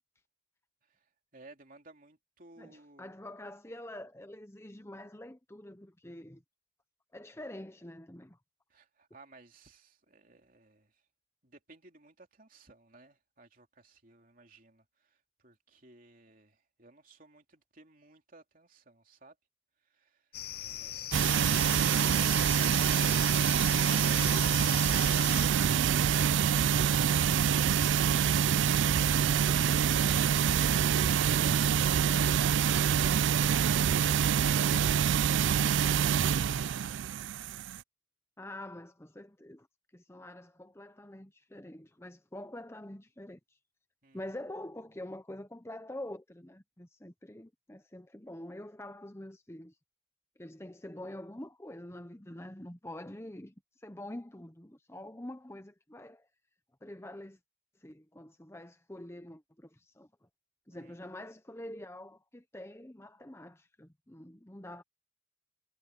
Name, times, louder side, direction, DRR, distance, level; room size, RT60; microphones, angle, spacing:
voice 1, 0.8-3.2 8.7-11.0 11.4-19.4 19.8-23.7 44.0-44.2 60.7-61.0, right 2 dB, 45° right, 3.2 m, -57 dB
voice 2, 2.6-6.4 7.1-8.4 38.4-39.7 39.9-43.4 44.1-49.7 50.4-53.5 53.8-56.2 56.8-57.4 57.8-59.7 60.0-60.1 60.7-64.8, left 1 dB, 15° left, 0.9 m, -46 dB
sound 1, 20.3-25.5, left 12 dB, 50° left, 0.7 m, -40 dB
sound 2, 21.1-37.8, right 8 dB, 70° right, 0.4 m, -26 dB
head